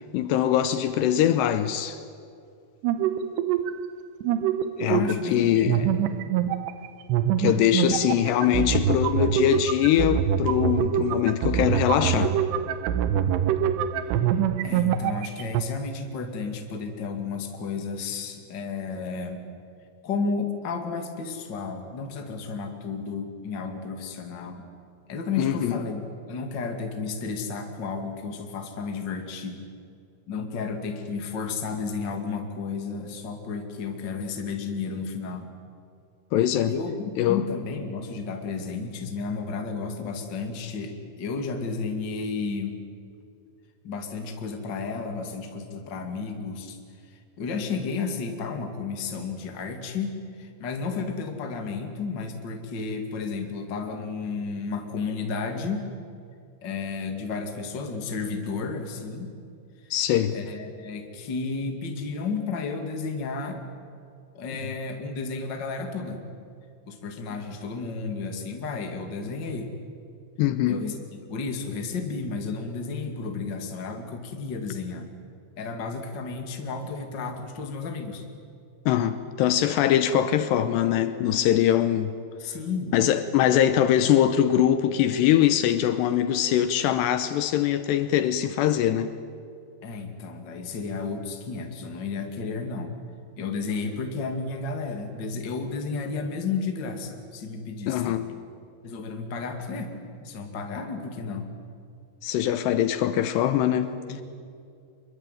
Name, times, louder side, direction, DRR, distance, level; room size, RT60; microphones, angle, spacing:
voice 1, 0.1-2.0 4.8-5.8 7.4-12.4 25.4-25.8 36.3-36.7 37.2-37.4 59.9-60.3 70.4-70.8 78.9-82.1 82.9-89.1 97.9-98.3 102.2-104.0, left 11 dB, 80° left, 2.9 m, -22 dB
sound 1, 2.8-3.9 4.2-5.4 5.7-15.6, right 9 dB, 80° right, 3.0 m, -25 dB
voice 2, 4.9-5.9 7.9-8.2 14.0-19.5 20.0-24.7 25.1-29.6 30.3-35.5 36.7-42.8 43.8-46.8 47.1-55.9 56.6-59.3 60.3-63.6 64.3-66.2 66.8-69.7 70.7-70.9 71.3-75.1 75.6-78.2 82.4-83.0 89.8-93.0 93.4-98.3 98.8-99.9 100.2-101.5 104.1-104.2, left 4 dB, 30° left, 2.3 m, -32 dB
25.5 x 22.5 x 9.2 m
omnidirectional pair, 5.1 m